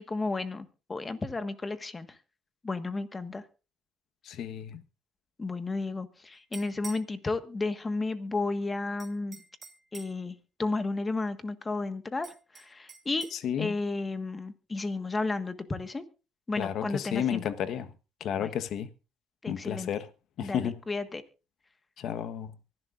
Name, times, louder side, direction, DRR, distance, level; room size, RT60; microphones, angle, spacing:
voice 1, 0.0-2.2 2.6-3.5 5.4-9.4 9.9-13.3 13.6-16.0 16.5-17.4 18.4-18.5 19.4-19.9 20.4-21.2, left 3 dB, 20° left, 1.5 m, -33 dB
voice 2, 4.2-4.8 13.3-13.7 16.6-17.9 18.2-18.9 19.5-20.1 20.4-20.7 22.0-22.6, left 9 dB, 60° left, 1.2 m, -32 dB
sound 1, 6.3-7.1 9.0-10.2 12.2-13.4, right 5 dB, 30° right, 4.9 m, -47 dB
24.0 x 11.0 x 2.5 m
cardioid pair, 110°, 0 cm